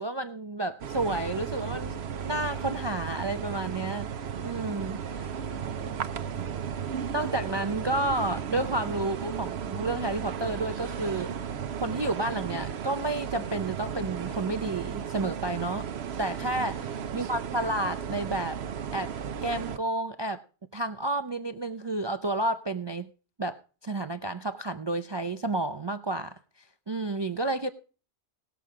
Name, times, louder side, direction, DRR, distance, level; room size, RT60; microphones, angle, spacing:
voice 1, 0.0-4.1 4.4-5.3 7.1-11.4 11.8-15.8 16.2-16.7 17.1-18.6 18.9-19.1 19.4-20.4 20.7-23.1 23.4-27.7, right 2 dB, 35° right, 0.4 m, -31 dB
sound 1, 0.8-19.8, right 7 dB, 70° right, 1.0 m, -35 dB
voice 2, 4.7-7.0 16.6-17.1, equal, 75° left, 4.8 m, -49 dB
18.5 x 7.0 x 4.9 m
omnidirectional pair, 1.2 m